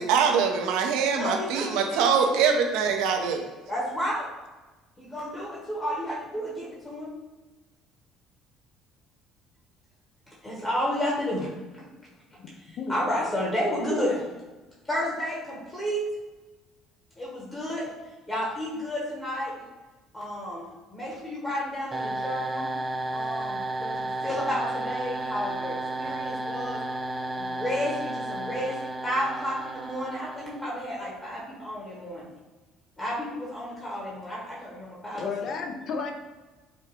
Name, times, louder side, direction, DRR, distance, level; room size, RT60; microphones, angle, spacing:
voice 1, 0.0-3.4, right 6 dB, 75° right, 4 dB, 0.5 m, -23 dB
voice 2, 1.2-2.1 2.3-2.4 3.7-4.3 5.0-7.1 10.4-11.9 12.6-14.3 14.9-16.0 17.2-17.9 18.3-19.5 20.1-22.7 23.1-26.8 27.4-28.8 29.0-32.3 33.0-35.5, equal, 30° left, -6 dB, 1.2 m, -31 dB
sound 1, 21.9-30.8, right 2 dB, 25° right, 0.4 m, -32 dB
voice 3, 35.2-36.1, left 5 dB, 55° left, 4 dB, 0.5 m, -32 dB
4.9 x 2.3 x 2.9 m, 1.2 s
hypercardioid pair, 65°, 0 cm